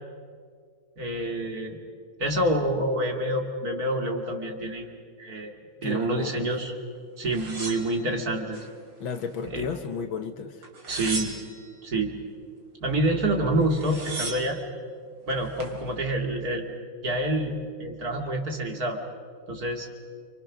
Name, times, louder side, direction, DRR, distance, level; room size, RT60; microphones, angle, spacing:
voice 1, 1.0-1.8 2.2-5.5 5.8-6.7 7.2-8.6 9.5-9.7 10.9-11.3 11.8-12.1 12.8-14.6 15.3-16.6 17.0-19.0 19.5-19.9, right 1 dB, 45° right, 2 dB, 2.9 m, -27 dB
voice 2, 5.8-6.5 9.0-10.6, left 6 dB, 70° left, 8 dB, 2.0 m, -33 dB
sound 1, 7.3-8.7 9.1-9.9 10.6-11.7 13.3-13.4 13.6-14.6 15.3-15.8, right 2 dB, 60° right, 3.7 m, -37 dB
29.0 x 24.5 x 6.3 m, 2.1 s
omnidirectional pair, 2.2 m